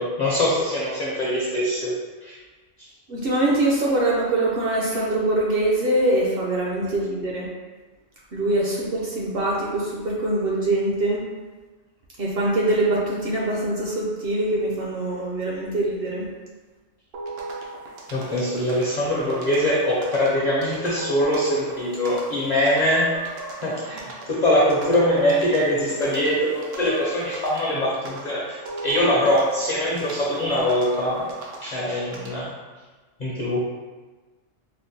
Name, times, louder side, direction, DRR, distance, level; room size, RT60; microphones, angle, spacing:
voice 1, 0.0-1.9 2.2-2.4 18.1-23.1 23.6-28.6 28.8-31.3 31.6-32.5 33.2-33.6, left 1 dB, 45° left, -6 dB, 0.6 m, -22 dB
voice 2, 3.1-7.5 8.3-11.3 12.2-16.3, right 1 dB, 60° right, -4 dB, 0.7 m, -23 dB
sound 1, 17.1-32.5, right 2 dB, 85° right, 1.0 m, -38 dB
4.3 x 2.0 x 2.7 m, 1.3 s
omnidirectional pair, 1.3 m